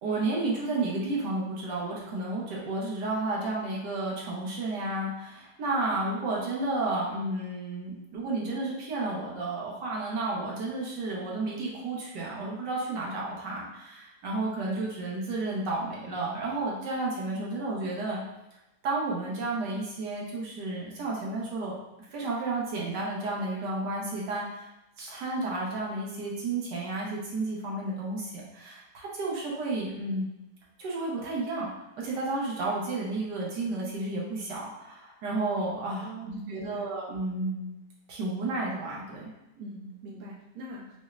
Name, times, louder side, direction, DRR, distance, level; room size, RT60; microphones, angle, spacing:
voice 1, 0.0-18.2 18.8-21.7 22.1-24.7 25.0-30.3 30.8-31.7 32.0-37.7 38.1-39.3, right 2 dB, 80° right, -4 dB, 1.4 m, -32 dB
voice 2, 36.0-36.9 39.6-41.0, right 1 dB, 65° right, -2 dB, 1.1 m, -42 dB
6.0 x 2.1 x 2.5 m, 0.94 s
omnidirectional pair, 1.8 m